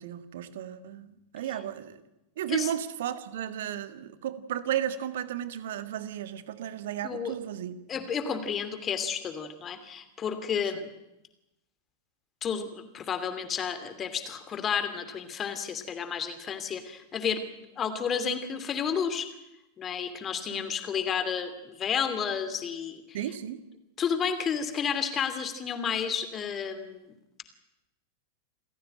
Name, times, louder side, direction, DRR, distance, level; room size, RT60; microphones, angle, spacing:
voice 1, 0.0-2.0 2.4-7.8 20.5-20.6 23.1-23.6, right 11 dB, 55° right, 12 dB, 1.8 m, -34 dB
voice 2, 7.0-7.3 7.9-10.9 12.4-17.4 17.8-19.3 19.8-23.2 24.0-27.1, left 7 dB, 25° left, 11 dB, 2.8 m, -31 dB
28.0 x 15.5 x 9.1 m, 0.92 s
figure-of-eight pair, 90°, 0 cm